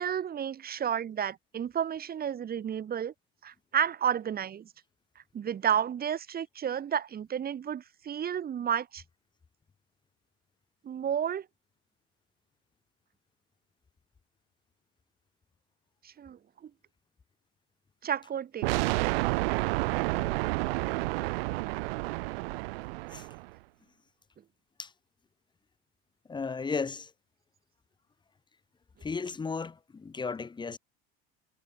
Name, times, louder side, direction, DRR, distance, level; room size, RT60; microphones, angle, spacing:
voice 1, 0.0-3.1 3.4-4.7 5.3-9.0 10.8-11.5 16.0-16.7 18.0-18.7, right 9 dB, 30° right, 5.2 m, -31 dB
sound 1, 18.6-23.5, right 23 dB, 85° right, 0.8 m, -30 dB
voice 2, 26.3-27.1 29.0-30.8, left 4 dB, 15° left, 1.3 m, -34 dB
supercardioid pair, 125°, 29 cm